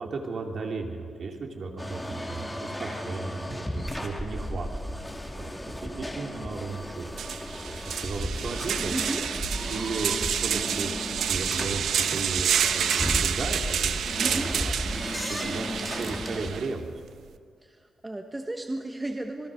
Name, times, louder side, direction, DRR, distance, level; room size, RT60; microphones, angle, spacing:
voice 1, 0.0-5.0 5.3-7.1 7.7-9.0 9.6-16.9, right 4 dB, 50° right, 2 dB, 3.0 m, -35 dB
sound 1, 1.8-16.5, left 1 dB, 5° left, 2.3 m, -34 dB
sound 2, 6.7-6.8 7.1-16.7, right 8 dB, 80° right, 0.9 m, -29 dB
voice 2, 8.9-9.2 14.2-14.5 17.6-19.5, right 2 dB, 15° right, 4 dB, 1.1 m, -34 dB
27.0 x 21.5 x 6.4 m, 2.1 s
wide cardioid pair, 170°, 0 cm